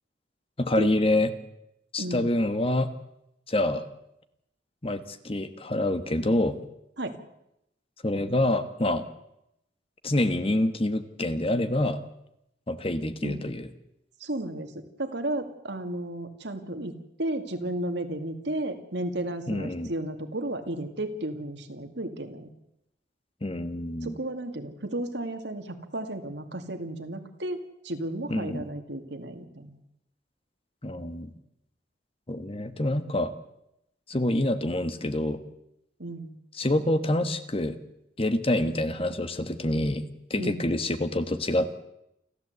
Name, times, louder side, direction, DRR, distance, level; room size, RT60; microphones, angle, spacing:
voice 1, 0.6-1.3 1.9-2.9 3.5-3.8 4.8-6.6 8.0-9.0 10.0-12.0 12.7-13.7 19.5-19.9 23.4-24.2 28.3-28.7 30.8-31.3 32.3-33.3 34.1-35.4 36.5-37.8 38.2-41.7, left 1 dB, 30° left, 10 dB, 1.3 m, -26 dB
voice 2, 14.2-14.7 15.0-22.5 24.0-27.6 27.8-29.8 36.0-36.3 40.4-40.6, right 1 dB, 70° right, 6 dB, 2.4 m, -33 dB
29.0 x 12.0 x 8.1 m, 0.83 s
head